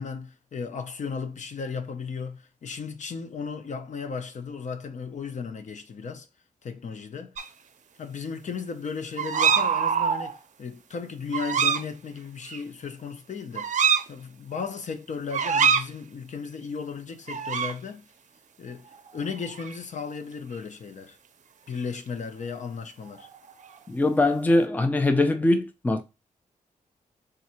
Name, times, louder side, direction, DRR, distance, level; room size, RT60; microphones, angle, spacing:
voice 1, 0.0-6.3 6.6-7.3 8.0-13.7 14.1-18.0 18.6-21.2 21.7-23.3, left 5 dB, 60° left, 0.6 m, -35 dB
sound 1, 7.4-7.5 9.2-10.4 11.3-11.8 12.5-12.6 13.6-14.1 15.3-15.9 17.3-17.7 18.9-19.2 19.4-19.8 23.1-23.8, right 7 dB, 60° right, 0.5 m, -24 dB
voice 2, 23.9-26.0, left 2 dB, 10° left, 0.5 m, -22 dB
3.8 x 2.6 x 4.2 m
wide cardioid pair, 135°, 14 cm